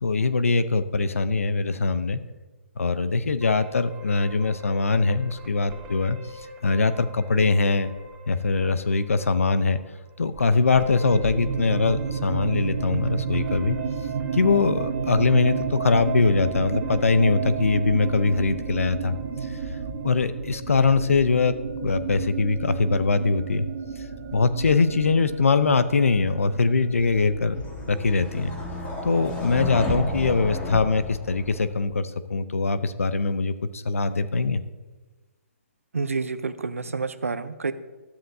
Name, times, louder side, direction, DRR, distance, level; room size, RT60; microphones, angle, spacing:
voice 1, 0.0-2.2 2.8-7.9 8.3-9.8 10.2-13.8 14.3-19.2 19.4-19.6 20.0-21.6 21.8-23.6 24.0-24.1 24.3-27.6 27.9-28.5 29.0-34.6, left 4 dB, 80° left, 12 dB, 0.7 m, -22 dB
sound 1, 3.4-20.5, left 1 dB, 15° right, 3.6 m, -46 dB
sound 2, 11.0-30.9, right 6 dB, 50° right, 1.6 m, -32 dB
sound 3, 27.0-31.9, left 1 dB, 20° left, 2.1 m, -32 dB
voice 2, 35.9-37.7, right 4 dB, 90° right, 13 dB, 0.7 m, -28 dB
13.0 x 12.5 x 2.7 m, 1.3 s
hypercardioid pair, 140°, 7 cm